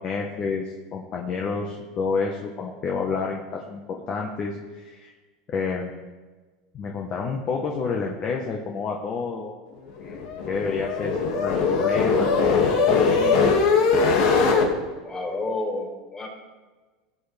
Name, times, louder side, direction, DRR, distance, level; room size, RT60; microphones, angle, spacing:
voice 1, 0.0-5.1 5.5-5.9 6.7-9.6 10.0-13.5, left 4 dB, 40° left, 0 dB, 1.4 m, -29 dB
sound 1, 10.0-14.7, left 4 dB, 70° left, 2.3 m, -21 dB
voice 2, 15.0-16.3, left 2 dB, 20° left, -2 dB, 4.2 m, -30 dB
18.0 x 8.3 x 3.6 m, 1.3 s
supercardioid pair, 125°, 3 cm